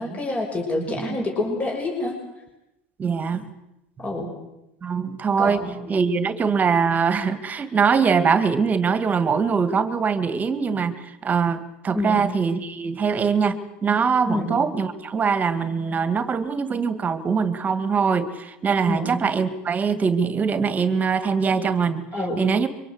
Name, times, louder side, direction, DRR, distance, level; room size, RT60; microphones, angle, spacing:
voice 1, 0.0-2.2 4.0-4.3 5.4-5.7 11.9-12.3 14.2-14.6 18.9-19.2 22.1-22.4, left 1 dB, 25° left, 1 dB, 5.9 m, -27 dB
voice 2, 3.0-3.5 4.8-22.0 22.4-22.7, right 5 dB, 25° right, 12 dB, 2.3 m, -22 dB
25.0 x 24.0 x 8.1 m, 0.91 s
supercardioid pair, 110°, 6 cm